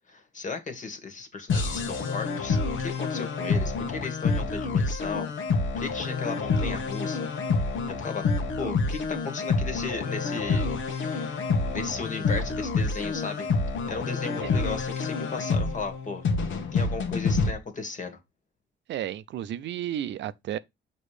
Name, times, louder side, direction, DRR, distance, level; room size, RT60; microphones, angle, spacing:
voice 1, 0.1-5.3 5.7-7.3 7.9-8.3 8.6-11.4 11.6-13.5 13.8-16.2 16.7-18.2, left 4 dB, 40° left, 1.6 m, -36 dB
sound 1, 1.5-17.5, left 4 dB, 75° left, 1.2 m, -28 dB
voice 2, 18.9-20.6, right 11 dB, 65° right, 0.5 m, -32 dB
6.4 x 3.0 x 4.9 m
cardioid pair, 90°, 20 cm